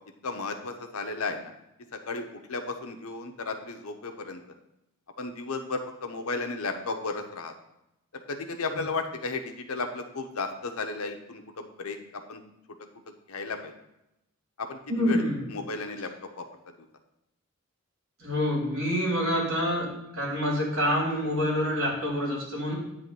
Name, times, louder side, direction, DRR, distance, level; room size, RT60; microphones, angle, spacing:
voice 1, 0.2-1.5 2.1-4.4 5.2-7.5 8.3-12.4 13.3-13.7 14.6-15.2 15.5-16.1 16.4-16.5, left 3 dB, 80° left, 5 dB, 1.0 m, -34 dB
voice 2, 14.9-15.4 18.2-19.9 20.1-22.7, equal, 70° right, -4 dB, 3.6 m, -27 dB
9.7 x 3.4 x 6.9 m, 0.86 s
head